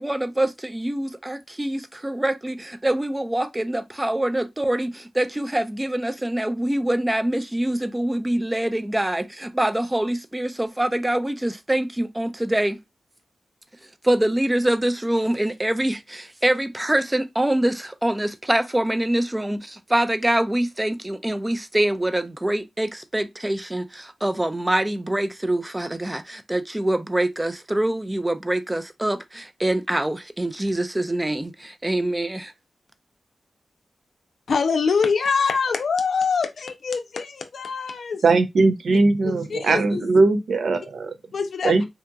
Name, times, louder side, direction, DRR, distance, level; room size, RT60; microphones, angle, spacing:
voice 1, 0.0-12.8 14.0-32.5, right 1 dB, 15° right, 0.4 m, -24 dB
voice 2, 34.5-38.4 39.2-40.0 41.3-41.7, left 5 dB, 75° left, 0.5 m, -24 dB
voice 3, 38.2-41.1 41.6-41.9, right 3 dB, 75° right, 0.5 m, -19 dB
2.7 x 2.6 x 2.2 m
cardioid pair, 50°, 0 cm